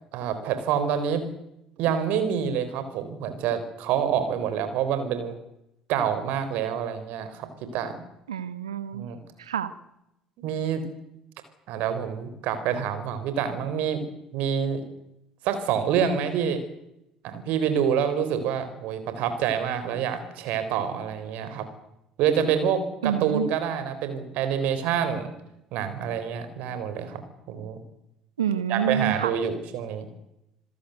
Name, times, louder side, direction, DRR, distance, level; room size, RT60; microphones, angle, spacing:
voice 1, 0.1-1.2 1.8-5.4 5.9-7.5 7.7-7.9 8.9-9.2 10.4-10.8 11.7-14.0 14.3-14.8 15.4-16.6 17.2-21.7 22.2-25.3 25.7-27.2 27.5-27.8 28.7-30.1, right 8 dB, 60° right, 10 dB, 3.8 m, -27 dB
voice 2, 8.3-9.1 9.4-9.7 23.0-23.5 28.4-29.3, right 8 dB, 80° right, 14 dB, 1.2 m, -27 dB
27.5 x 17.0 x 8.0 m, 0.86 s
figure-of-eight pair, 55°, 3 cm